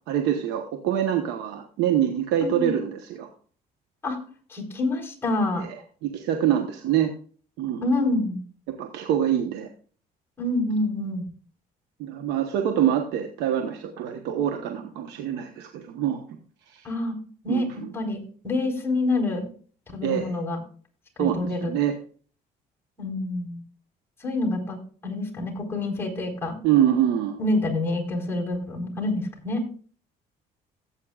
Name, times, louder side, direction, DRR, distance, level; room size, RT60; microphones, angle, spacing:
voice 1, 0.1-3.3 5.6-5.7 6.0-7.1 7.6-7.9 8.7-9.7 12.0-16.2 16.7-16.8 17.5-17.9 20.0-20.3 21.2-22.0 26.6-27.4, right 10 dB, 90° right, 5 dB, 1.2 m, -25 dB
voice 2, 2.4-2.8 4.0-4.2 4.5-5.7 7.8-8.4 10.4-11.2 16.8-17.1 17.4-17.7 17.9-19.5 19.9-20.6 21.2-21.7 23.0-23.6 24.2-24.8 25.0-26.6 27.4-29.6, left 2 dB, 15° left, 1 dB, 4.2 m, -27 dB
17.0 x 8.4 x 2.4 m, 0.43 s
cardioid pair, 110°, 17 cm